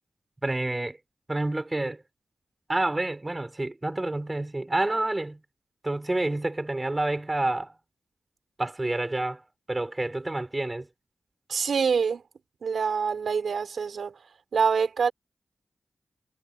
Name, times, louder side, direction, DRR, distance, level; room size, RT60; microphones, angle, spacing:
voice 1, 0.4-1.0 1.3-2.0 2.7-5.4 5.8-7.7 8.6-9.4 9.7-10.9, right 2 dB, 25° right, 5.8 m, -28 dB
voice 2, 11.5-12.2 12.6-14.1 14.5-15.1, right 6 dB, 85° right, 5.5 m, -25 dB
cardioid pair, 55°, 0 cm